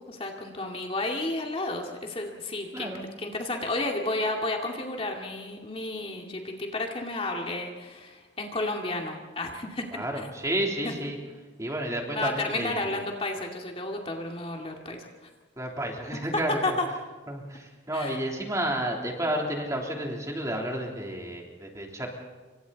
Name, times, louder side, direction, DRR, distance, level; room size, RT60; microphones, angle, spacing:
voice 1, 0.0-2.9 3.2-10.3 10.8-10.9 12.1-15.1 16.1-16.2 16.6-16.9 17.9-18.2, left 2 dB, 30° left, 1 dB, 2.4 m, -32 dB
voice 2, 2.7-3.0 9.9-11.2 11.6-13.0 15.6-16.8 17.3-22.1, right 1 dB, 20° right, 0 dB, 3.5 m, -31 dB
28.0 x 25.0 x 4.1 m, 1.3 s
head